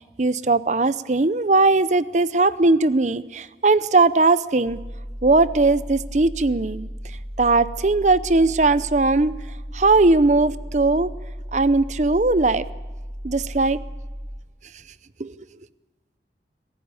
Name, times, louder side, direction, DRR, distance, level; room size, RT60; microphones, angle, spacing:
voice 1, 0.2-4.8 5.2-6.9 7.4-9.4 9.7-11.1 11.5-12.6 13.2-13.8 15.2-15.3, right 3 dB, 40° right, 16 dB, 0.7 m, -19 dB
sound 1, 4.6-14.4, equal, 15° right, 4.0 m, -35 dB
24.0 x 15.5 x 9.7 m, 1.2 s
head